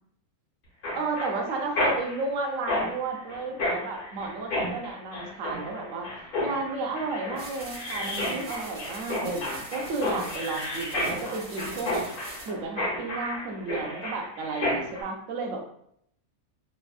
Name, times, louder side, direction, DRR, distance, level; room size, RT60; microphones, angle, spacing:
Mechanisms, 0.8-15.0, left 1 dB, 85° left, 1.4 m, -32 dB
voice 1, 0.9-6.1 6.4-12.0 12.5-15.6, right 3 dB, 70° right, 2 dB, 0.9 m, -32 dB
sound 1, 7.4-12.5, right 1 dB, 40° right, 0.9 m, -43 dB
3.4 x 2.2 x 2.3 m, 0.70 s
omnidirectional pair, 1.5 m